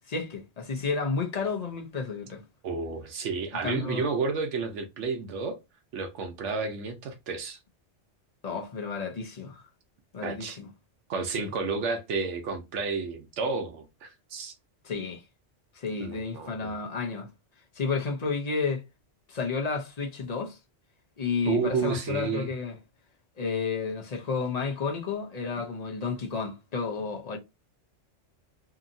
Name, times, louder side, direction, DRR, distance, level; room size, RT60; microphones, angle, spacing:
voice 1, 0.1-2.4 3.5-4.1 8.4-9.6 10.1-10.7 11.4-11.5 14.8-15.2 15.7-17.3 17.7-18.8 19.3-20.6 21.2-22.8 23.4-27.4, left 4 dB, 45° left, 0.6 m, -31 dB
voice 2, 2.6-5.6 5.9-7.6 10.2-10.6 11.1-14.5 16.0-16.7 21.4-22.5, right 4 dB, 80° right, 0.9 m, -31 dB
2.8 x 2.6 x 2.5 m
omnidirectional pair, 1.2 m